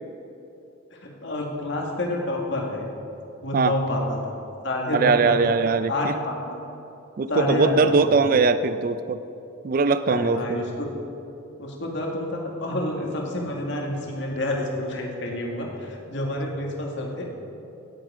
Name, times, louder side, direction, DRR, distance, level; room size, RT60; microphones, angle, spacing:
voice 1, 0.9-2.9 3.4-4.2 4.6-5.5 5.9-6.6 7.3-8.0 10.1-10.9 11.6-17.3, left 1 dB, 60° left, 0 dB, 2.0 m, -28 dB
voice 2, 4.9-6.1 7.2-9.2 9.6-10.6, right 4 dB, 45° right, 12 dB, 0.3 m, -21 dB
16.5 x 7.9 x 5.0 m, 2.9 s
head